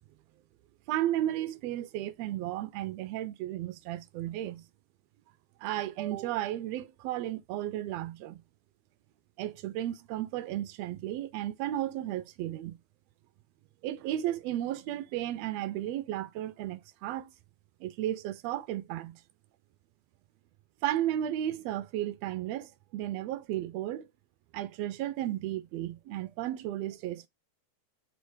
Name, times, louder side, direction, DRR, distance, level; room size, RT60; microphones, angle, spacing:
voice 1, 0.9-4.6 5.6-8.4 9.4-12.8 13.8-17.3 17.8-19.2 20.8-24.1 24.5-27.3, right 13 dB, 75° right, 1.6 m, -34 dB
5.0 x 3.2 x 3.1 m
omnidirectional pair, 3.4 m